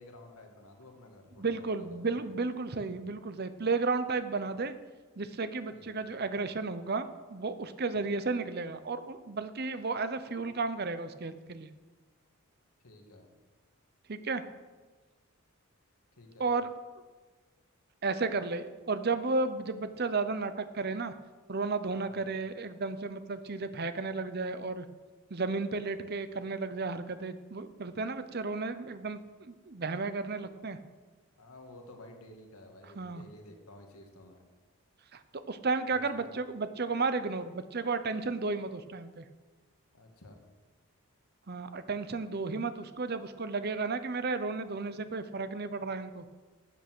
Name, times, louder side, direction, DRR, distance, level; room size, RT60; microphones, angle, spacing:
voice 1, 0.0-2.2 5.7-6.1 12.8-13.3 16.2-16.5 22.1-22.3 31.4-34.4 35.9-36.0 39.9-40.4, left 1 dB, 80° left, 3 dB, 1.9 m, -52 dB
voice 2, 1.4-4.7 5.2-11.7 14.1-14.4 16.4-16.7 18.0-21.1 21.5-24.9 25.3-30.8 33.0-33.2 35.1-35.2 35.5-39.2 41.5-46.2, right 3 dB, 45° right, 11 dB, 0.7 m, -33 dB
12.5 x 8.1 x 6.1 m, 1.3 s
head